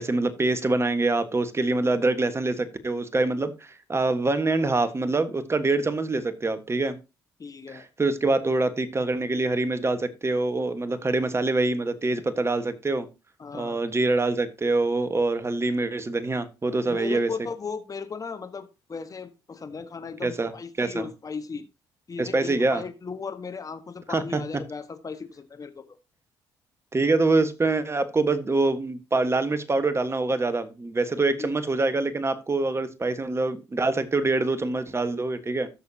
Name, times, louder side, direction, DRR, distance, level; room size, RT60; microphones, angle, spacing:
voice 1, 0.0-7.0 7.7-13.1 13.5-17.3 20.2-20.5 20.8-21.1 22.2-22.8 24.1-24.4 26.9-35.7, right 2 dB, 25° right, 1.4 m, -25 dB
voice 2, 7.4-7.8 13.4-13.8 16.8-21.6 22.1-25.8 31.4-31.5, left 5 dB, 35° left, 1.4 m, -36 dB
13.5 x 6.6 x 2.8 m
hypercardioid pair, 55°, 10 cm